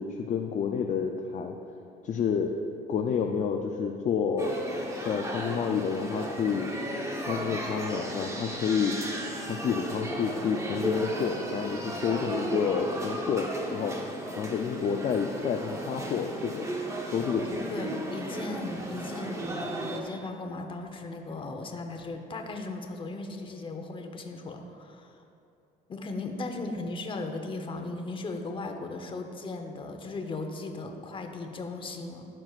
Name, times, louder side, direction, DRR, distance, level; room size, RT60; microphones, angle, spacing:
voice 1, 0.0-1.5 2.0-2.5 2.9-4.5 5.0-6.7 7.2-9.0 9.5-14.0 14.4-16.7 17.0-17.6, left 6 dB, 45° left, 3 dB, 0.5 m, -29 dB
sound 1, 4.4-20.0, right 1 dB, 15° right, 1.0 m, -35 dB
voice 2, 17.7-25.2 25.9-32.3, left 2 dB, 30° left, 4 dB, 0.9 m, -37 dB
15.0 x 6.1 x 2.5 m, 2.7 s
cardioid pair, 110°, 17 cm